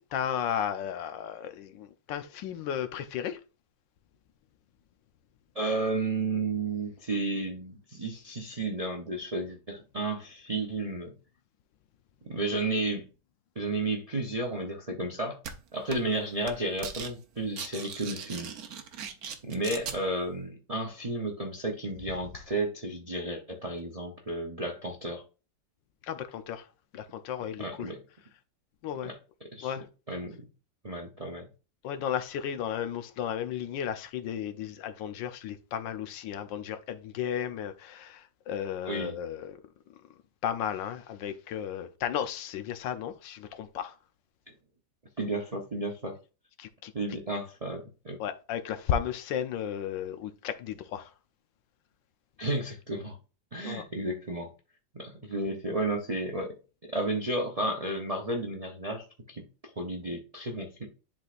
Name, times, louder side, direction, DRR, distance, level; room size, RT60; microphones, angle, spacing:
voice 1, 0.0-3.4 26.0-26.7 26.9-27.9 28.8-29.1 29.6-29.9 31.8-39.6 40.4-44.0 46.6-46.9 48.2-51.1 53.6-53.9, left 9 dB, 75° left, 1.4 m, -34 dB
voice 2, 5.5-11.1 12.2-13.0 13.6-15.4 15.7-18.5 19.4-25.2 27.6-28.0 29.0-29.2 29.5-29.7 30.1-30.4 30.8-31.5 38.9-39.1 45.2-46.2 46.9-48.2 52.4-53.2 53.5-54.5 54.9-56.6 56.8-59.4 59.8-60.9, right 2 dB, 40° right, 0.5 m, -32 dB
sound 1, 15.4-15.5 15.9-16.2 16.4-17.1 17.4-20.0, right 7 dB, 60° right, 1.2 m, -39 dB
10.5 x 4.0 x 2.5 m
omnidirectional pair, 2.0 m